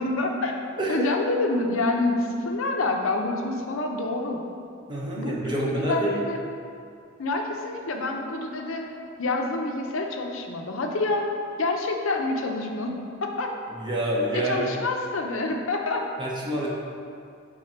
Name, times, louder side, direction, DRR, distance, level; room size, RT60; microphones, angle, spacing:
voice 1, 0.0-4.4 5.1-5.4 5.7-6.4 7.2-13.6 14.3-16.1, left 2 dB, 70° left, 3 dB, 0.6 m, -27 dB
voice 2, 4.9-6.2 13.8-14.7 16.2-16.7, right 1 dB, 20° right, -4 dB, 0.7 m, -27 dB
6.5 x 3.7 x 4.3 m, 2.4 s
head